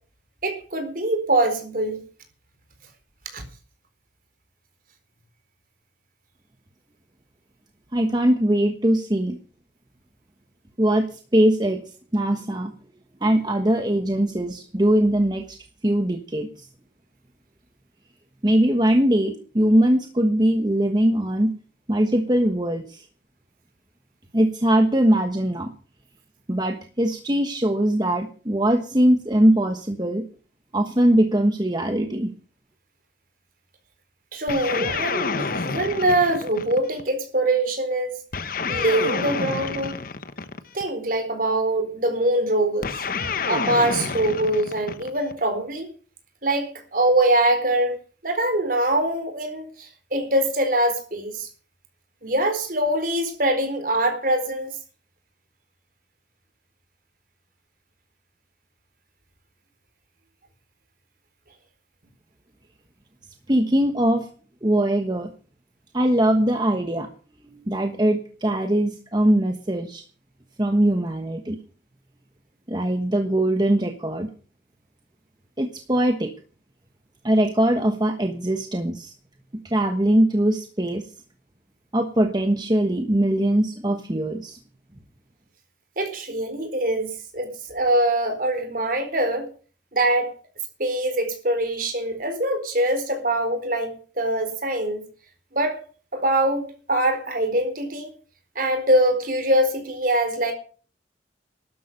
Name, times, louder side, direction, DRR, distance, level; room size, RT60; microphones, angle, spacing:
voice 1, 0.4-2.0 3.3-3.4 34.3-38.2 38.7-40.0 40.7-43.0 43.5-45.9 46.4-48.0 48.2-51.5 52.2-54.7 86.0-89.5 89.9-90.3 90.8-95.1 95.5-95.8 96.1-98.1 98.6-100.5, right 1 dB, 50° right, 4.2 m, -23 dB
voice 2, 7.9-9.4 10.8-11.8 12.1-12.7 13.2-15.6 15.8-16.7 18.4-21.5 21.9-23.0 24.3-25.7 26.5-30.3 30.7-32.3 63.5-64.3 64.6-65.3 65.9-67.1 67.7-70.0 70.6-71.6 72.7-74.3 75.6-76.3 77.2-79.1 79.6-81.1 81.9-84.6, right 1 dB, 25° right, 1.3 m, -21 dB
sound 1, 34.5-37.1 38.3-40.9 42.8-45.4, left 4 dB, 50° left, 1.1 m, -29 dB
13.0 x 11.5 x 6.6 m
head